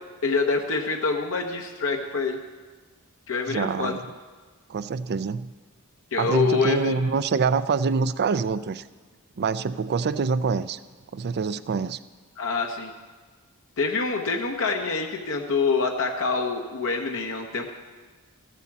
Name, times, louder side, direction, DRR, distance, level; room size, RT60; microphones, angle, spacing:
voice 1, 0.2-2.4 3.3-4.0 6.1-6.9 12.4-12.9 13.8-17.7, left 4 dB, 65° left, 3 dB, 1.0 m, -26 dB
voice 2, 3.5-4.0 4.7-5.5 6.2-8.9 9.4-10.8 11.1-12.0, right 5 dB, 50° right, 15 dB, 0.4 m, -25 dB
14.0 x 8.2 x 7.3 m, 1.4 s
head